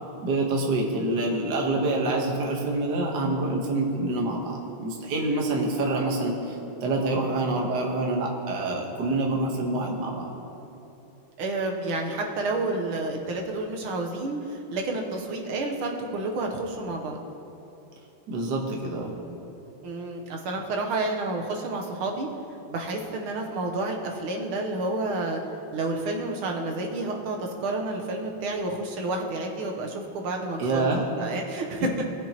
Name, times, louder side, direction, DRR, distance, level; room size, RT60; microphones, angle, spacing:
voice 1, 0.2-6.6 6.8-10.3 18.3-19.1 30.6-31.0, right 2 dB, 55° right, 0 dB, 1.6 m, -26 dB
voice 2, 11.4-17.2 19.8-22.3 22.7-25.5 25.7-31.9, right 2 dB, 75° right, 1 dB, 1.8 m, -30 dB
18.0 x 7.2 x 2.9 m, 3.0 s
omnidirectional pair, 2.4 m